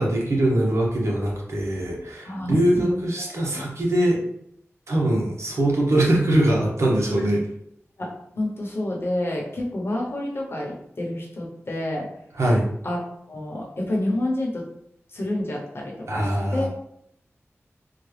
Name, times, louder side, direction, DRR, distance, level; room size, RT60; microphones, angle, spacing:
voice 1, 0.0-4.2 4.9-7.4 12.4-12.7 16.1-16.7, right 1 dB, 70° right, -2 dB, 0.9 m, -22 dB
voice 2, 2.2-3.6 4.9-5.1 7.2-7.3 8.0-12.1 12.8-13.0 13.3-14.7 15.1-16.7, left 1 dB, 55° left, -2 dB, 0.9 m, -29 dB
3.8 x 2.2 x 3.2 m, 0.74 s
wide cardioid pair, 95°, 5 cm